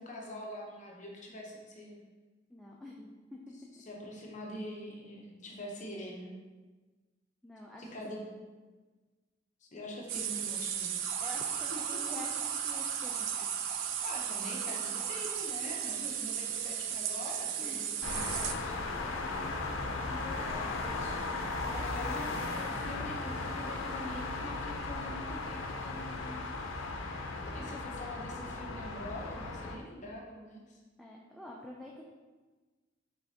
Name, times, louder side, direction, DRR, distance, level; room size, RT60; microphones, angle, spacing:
voice 1, 0.0-2.0 3.8-6.3 7.8-8.2 9.6-11.0 11.7-12.0 14.0-19.0 20.4-26.5 27.5-30.8, left 1 dB, 40° left, -2 dB, 0.7 m, -44 dB
voice 2, 2.5-3.5 7.4-7.9 11.2-13.5 17.6-17.8 19.6-20.9 21.6-22.5 27.6-27.9 31.0-32.0, left 1 dB, ahead, -3 dB, 0.3 m, -47 dB
sound 1, 10.1-18.5, right 9 dB, 75° right, 0.4 m, -35 dB
Motor vehicle (road) / Siren, 11.0-15.3, right 1 dB, 30° right, 1.4 m, -46 dB
sound 2, 18.0-29.8, left 3 dB, 85° left, 0.5 m, -36 dB
5.3 x 3.6 x 2.7 m, 1.3 s
head